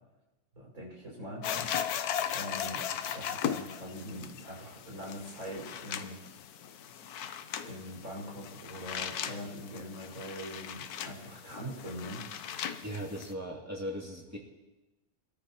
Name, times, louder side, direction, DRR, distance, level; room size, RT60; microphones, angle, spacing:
voice 1, 0.5-1.7 2.3-2.8 3.1-6.2 7.0-7.1 7.6-12.2, equal, 65° right, -3 dB, 6.0 m, -43 dB
sound 1, 1.4-13.3, left 9 dB, 85° left, 1.2 m, -38 dB
voice 2, 12.8-14.4, equal, 10° right, -3 dB, 2.6 m, -38 dB
25.5 x 13.5 x 3.0 m, 1.1 s
omnidirectional pair, 1.6 m